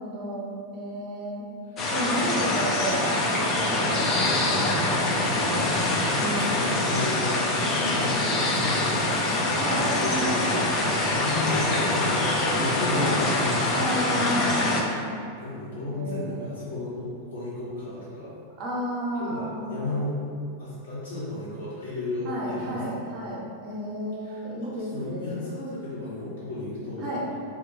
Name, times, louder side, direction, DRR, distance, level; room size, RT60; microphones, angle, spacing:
voice 1, 0.0-1.5 1.9-5.6 7.5-7.7 9.5-10.4 12.9-13.2 13.7-15.2 15.9-16.4 18.6-20.0 22.2-25.5 27.0-27.2, equal, 40° right, -5 dB, 0.6 m, -32 dB
sound 1, 1.8-14.8, left 2 dB, 30° left, 0.3 m, -25 dB
voice 2, 5.8-9.6 10.0-10.5 11.2-13.8 15.4-18.4 19.2-20.2 20.6-23.0 24.2-27.1, left 2 dB, 65° left, -10 dB, 1.0 m, -33 dB
2.2 x 2.1 x 2.7 m, 2.3 s
figure-of-eight pair, 90°, 0 cm